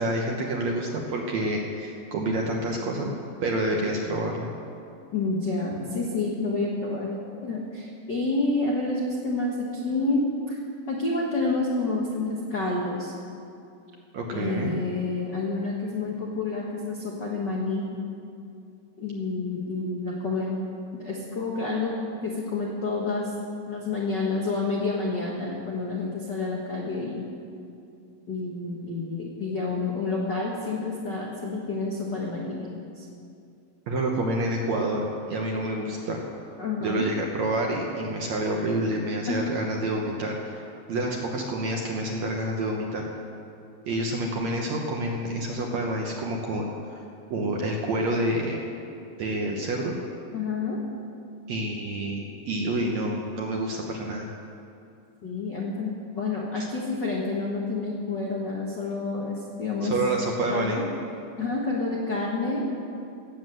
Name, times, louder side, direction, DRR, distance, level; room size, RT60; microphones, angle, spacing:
voice 1, 0.0-3.1 3.4-4.5 14.1-14.7 33.9-36.2 36.8-40.6 40.9-43.1 43.9-47.0 47.3-48.6 49.2-49.9 51.5-54.3 56.6-56.7 59.8-60.8, right 1 dB, 70° right, 0 dB, 1.8 m, -28 dB
voice 2, 5.1-7.1 7.4-10.6 10.9-13.1 14.3-18.0 19.0-20.6 21.0-21.9 22.2-23.3 23.7-27.3 28.3-33.0 36.6-37.1 39.3-39.6 50.3-50.8 55.2-59.9 60.5-60.8 61.4-62.7, left 3 dB, 85° left, -3 dB, 0.9 m, -29 dB
17.5 x 7.8 x 7.7 m, 2.6 s
omnidirectional pair, 4.4 m